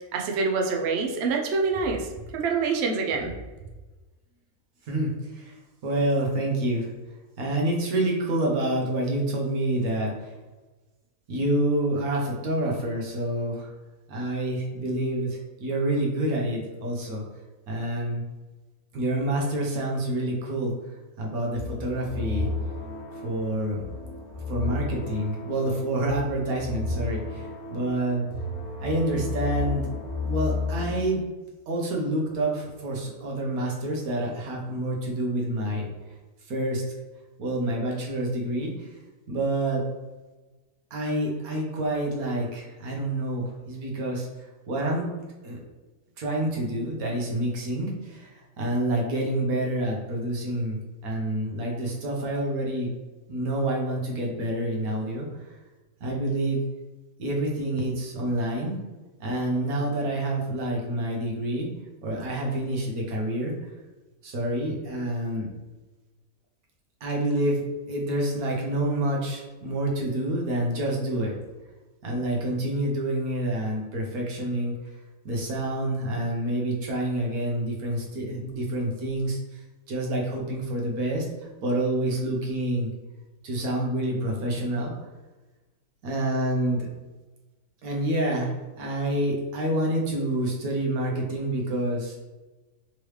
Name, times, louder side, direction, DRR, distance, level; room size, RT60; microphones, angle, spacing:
voice 1, 0.1-2.1 2.3-3.3, right 4 dB, 60° right, 1 dB, 0.7 m, -26 dB
voice 2, 4.8-6.9 7.4-10.3 11.3-13.7 14.1-17.2 17.7-18.2 18.9-22.5 23.1-23.8 24.5-28.2 28.8-29.9 30.3-31.2 31.7-35.9 36.5-36.8 37.4-38.9 39.3-39.8 40.9-45.1 45.4-45.6 46.2-50.8 51.0-53.0 53.3-55.6 56.0-56.6 57.2-58.8 59.2-61.7 62.0-63.7 64.2-65.5 67.0-67.6 67.9-71.4 72.0-74.7 75.2-82.9 83.4-85.1 86.0-86.9 87.8-92.2, right 1 dB, 80° right, -1 dB, 1.4 m, -28 dB
sound 1, 21.5-31.1, left 3 dB, 80° left, 1.3 m, -33 dB
3.7 x 3.2 x 3.1 m, 1.2 s
omnidirectional pair, 1.5 m